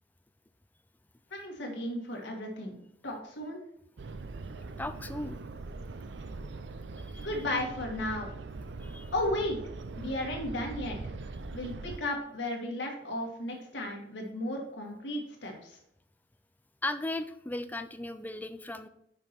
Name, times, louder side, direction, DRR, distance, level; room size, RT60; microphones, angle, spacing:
voice 1, 1.3-2.8 3.0-3.6 7.2-8.3 9.1-9.6 9.9-11.0 11.5-15.8, left 1 dB, 90° left, 1 dB, 1.8 m, -34 dB
sound 1, 4.0-12.0, right 3 dB, 85° right, 0.5 m, -41 dB
voice 2, 4.8-5.4 7.0-7.3 8.8-9.1 16.8-18.9, left 2 dB, 10° left, 10 dB, 0.4 m, -37 dB
6.1 x 5.5 x 4.3 m, 0.74 s
head